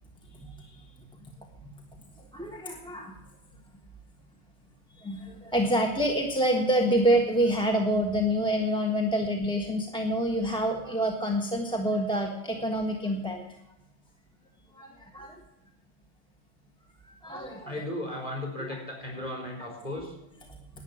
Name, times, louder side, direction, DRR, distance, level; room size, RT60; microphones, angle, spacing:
voice 1, 0.3-0.8 2.3-3.2 5.0-13.4 14.7-15.4 17.2-17.8, equal, 5° left, 1 dB, 1.2 m, -27 dB
voice 2, 17.3-20.1, left 1 dB, 20° left, 0 dB, 4.6 m, -36 dB
12.0 x 8.8 x 8.5 m, 0.90 s
omnidirectional pair, 1.7 m